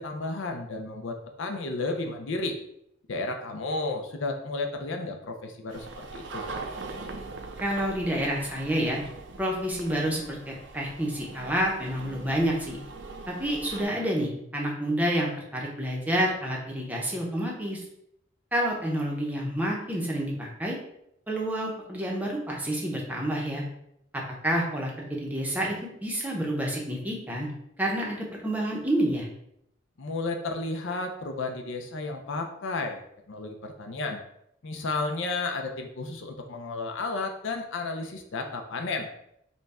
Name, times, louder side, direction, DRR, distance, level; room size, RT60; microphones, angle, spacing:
voice 1, 0.0-2.5 3.1-5.9 6.1-6.4 30.0-33.0 33.3-34.2 34.6-39.1, left 3 dB, 65° left, 4 dB, 0.5 m, -32 dB
sound 1, 5.7-13.8, right 3 dB, 60° right, 0.5 m, -41 dB
voice 2, 7.6-9.0 9.4-12.8 13.3-17.8 18.5-20.8 21.3-23.6 24.1-25.7 26.0-27.5 27.8-29.3, right 1 dB, 10° right, -2 dB, 0.7 m, -29 dB
5.5 x 2.2 x 4.1 m, 0.77 s
head